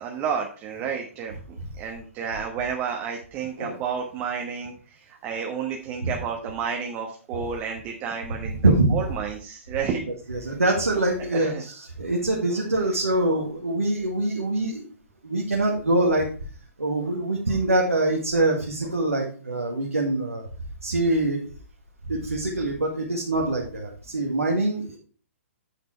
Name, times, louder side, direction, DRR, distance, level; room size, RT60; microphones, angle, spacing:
voice 1, 0.0-10.0 11.3-11.6, right 7 dB, 25° right, 2 dB, 1.2 m, -31 dB
voice 2, 8.4-9.0 10.3-14.9 15.2-16.3 16.8-20.5 20.8-21.4 22.0-25.0, right 2 dB, 85° right, -1 dB, 1.9 m, -24 dB
8.7 x 5.9 x 4.4 m, 0.40 s
figure-of-eight pair, 125°, 8 cm